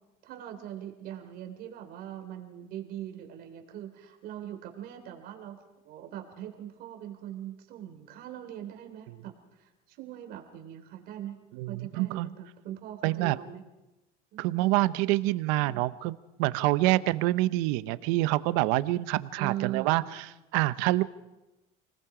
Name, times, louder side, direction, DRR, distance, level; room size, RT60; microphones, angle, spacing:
voice 1, 0.2-11.4 11.7-13.6 14.3-14.6 15.6-15.8 19.4-20.2, right 12 dB, 60° right, 4 dB, 3.3 m, -41 dB
voice 2, 11.6-12.3 13.0-13.4 14.4-20.0 20.5-21.0, right 18 dB, 85° right, 15 dB, 0.8 m, -26 dB
29.0 x 19.5 x 5.0 m, 1.0 s
cardioid pair, 135°, 18 cm